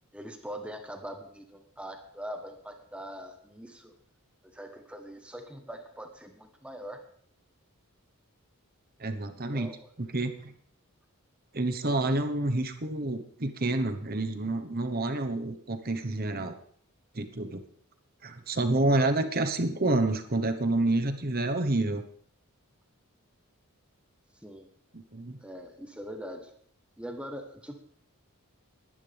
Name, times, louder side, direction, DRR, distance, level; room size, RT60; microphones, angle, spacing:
voice 1, 0.1-3.9 4.4-7.0 9.3-9.9 19.2-19.4 24.4-24.7 25.4-26.5 27.0-27.8, equal, 5° right, 5 dB, 1.1 m, -42 dB
voice 2, 9.0-9.7 10.0-10.5 11.5-16.6 17.1-17.6 18.2-22.0 24.9-25.4, right 2 dB, 45° right, 8 dB, 1.1 m, -28 dB
20.0 x 11.0 x 3.5 m, 0.63 s
head